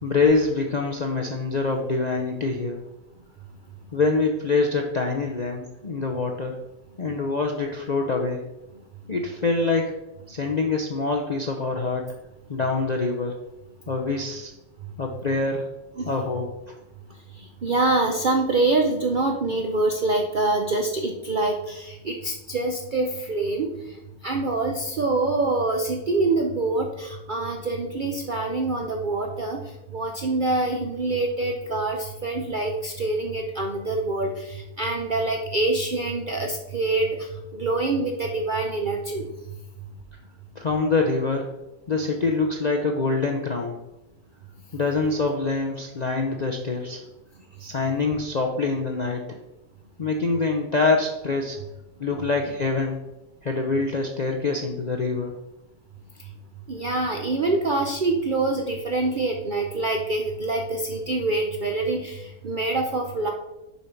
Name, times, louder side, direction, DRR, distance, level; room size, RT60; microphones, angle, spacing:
voice 1, 0.0-2.8 3.9-6.6 7.0-8.4 9.1-10.0 10.3-12.1 12.5-13.4 13.9-14.5 15.0-15.7 16.1-16.7 40.6-41.5 41.9-43.8 44.7-47.0 47.6-49.4 50.0-51.6 52.0-53.0 53.4-55.4, left 3 dB, 50° left, 1 dB, 0.5 m, -25 dB
voice 2, 17.6-23.7 24.2-29.6 29.9-37.2 37.5-39.3 56.7-63.3, right 2 dB, 55° right, 2 dB, 0.5 m, -25 dB
6.8 x 5.3 x 4.5 m, 0.95 s
omnidirectional pair, 1.6 m